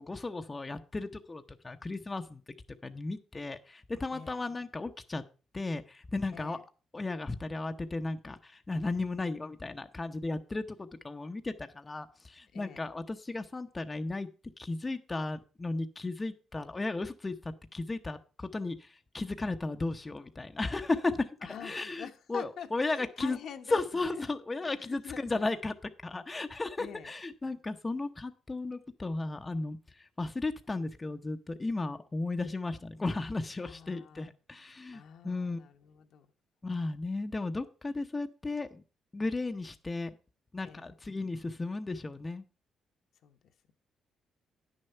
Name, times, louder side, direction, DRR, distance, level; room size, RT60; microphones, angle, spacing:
voice 1, 0.0-2.4 2.8-5.2 5.5-6.6 6.9-14.3 14.6-21.3 21.6-23.4 23.7-25.7 26.0-35.6 36.6-38.8 39.1-40.1 40.5-42.4, left 3 dB, 20° left, 7 dB, 0.8 m, -35 dB
voice 2, 6.3-6.6 12.5-12.9 21.4-24.3 24.8-25.3 26.8-27.1 33.6-34.3 34.9-36.3 40.6-40.9 43.2-43.4, left 8 dB, 70° left, 6 dB, 1.1 m, -46 dB
9.8 x 6.5 x 5.5 m, 0.36 s
cardioid pair, 90°, 0 cm